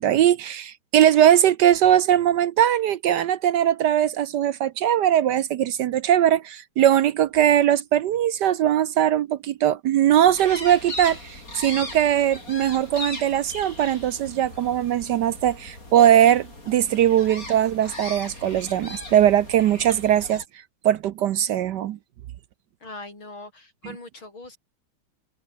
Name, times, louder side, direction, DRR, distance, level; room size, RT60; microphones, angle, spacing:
voice 1, 0.0-20.4 20.8-22.0, right 11 dB, 70° right, 1.2 m, -20 dB
sound 1, 10.3-20.4, left 2 dB, 40° left, 7.0 m, -38 dB
voice 2, 22.8-24.6, left 2 dB, 80° left, 8.6 m, -41 dB
omnidirectional pair, 2.2 m